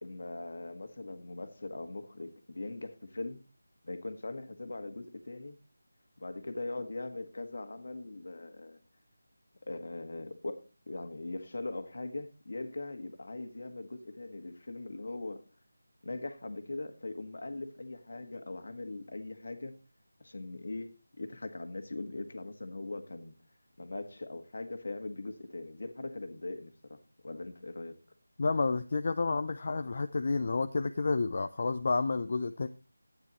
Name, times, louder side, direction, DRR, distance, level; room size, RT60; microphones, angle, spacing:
voice 1, 0.0-3.4 3.8-5.6 6.2-8.8 9.7-15.4 16.0-19.7 20.2-23.4 23.8-27.0 27.2-27.9, left 2 dB, 55° left, 8 dB, 1.6 m, -41 dB
voice 2, 28.4-32.7, left 3 dB, 35° left, 8 dB, 0.5 m, -30 dB
12.5 x 9.6 x 3.0 m, 0.31 s
figure-of-eight pair, 175°, 0 cm